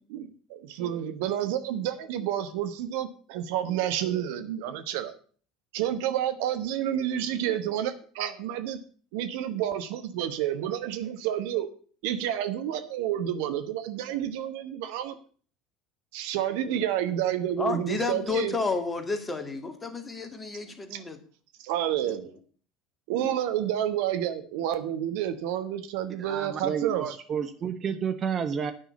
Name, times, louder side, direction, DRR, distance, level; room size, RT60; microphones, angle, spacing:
voice 1, 0.1-5.1 5.7-8.8 9.1-11.7 12.0-15.2 16.1-18.5 20.9-21.0 21.6-22.3 23.1-27.2, right 11 dB, 60° right, 9 dB, 1.1 m, -29 dB
voice 2, 17.6-21.2 22.0-22.2, left 4 dB, 20° left, 7 dB, 1.9 m, -31 dB
voice 3, 26.2-28.7, right 7 dB, 35° right, 9 dB, 1.1 m, -30 dB
9.8 x 6.1 x 8.1 m, 0.43 s
figure-of-eight pair, 70°, 0 cm